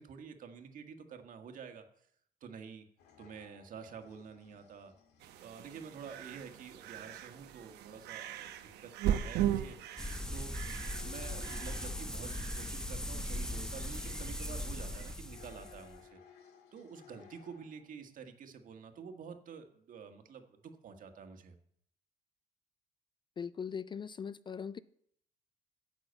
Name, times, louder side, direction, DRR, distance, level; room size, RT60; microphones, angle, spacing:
voice 1, 0.0-1.8 2.4-2.9 3.2-4.9 5.4-8.5 8.8-9.8 10.3-10.5 11.0-16.2 16.7-21.6, right 6 dB, 55° right, 1.6 m, -49 dB
sound 1, 3.0-18.0, left 7 dB, 80° left, 1.9 m, -61 dB
sound 2, 5.2-15.2, right 11 dB, 80° right, 0.9 m, -39 dB
sound 3, 10.0-16.0, left 1 dB, 5° left, 0.8 m, -39 dB
voice 2, 23.4-24.8, left 7 dB, 30° left, 0.3 m, -40 dB
10.5 x 6.1 x 8.1 m
cardioid pair, 110°, 17 cm